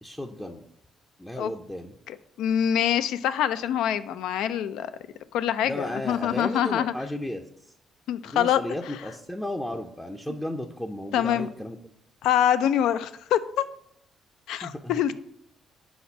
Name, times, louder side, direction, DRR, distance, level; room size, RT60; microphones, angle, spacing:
voice 1, 0.0-0.7 1.2-1.9 5.6-7.7 8.2-11.8 14.5-15.0, left 1 dB, 10° left, 3 dB, 0.5 m, -34 dB
voice 2, 2.1-4.9 5.3-6.9 8.1-8.6 11.1-11.5 12.2-13.6 14.5-15.2, left 10 dB, 85° left, 13 dB, 0.3 m, -25 dB
5.0 x 4.2 x 5.8 m, 0.73 s
cardioid pair, 90°, 0 cm